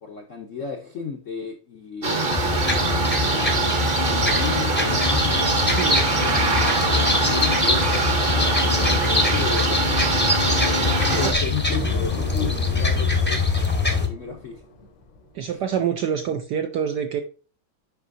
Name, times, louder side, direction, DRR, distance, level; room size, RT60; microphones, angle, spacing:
voice 1, 0.0-10.1 10.6-14.6 15.5-15.6, left 6 dB, 65° left, 2 dB, 0.7 m, -34 dB
sound 1, 2.0-11.3, right 3 dB, 40° right, 0.8 m, -23 dB
sound 2, 2.3-14.1, left 3 dB, 10° left, 0.5 m, -23 dB
voice 2, 5.8-6.1 11.0-11.4 15.3-17.2, right 8 dB, 75° right, 6 dB, 1.0 m, -26 dB
sound 3, 11.7-15.4, left 2 dB, 85° left, 2.1 m, -36 dB
8.5 x 5.4 x 2.6 m, 0.39 s
omnidirectional pair, 2.3 m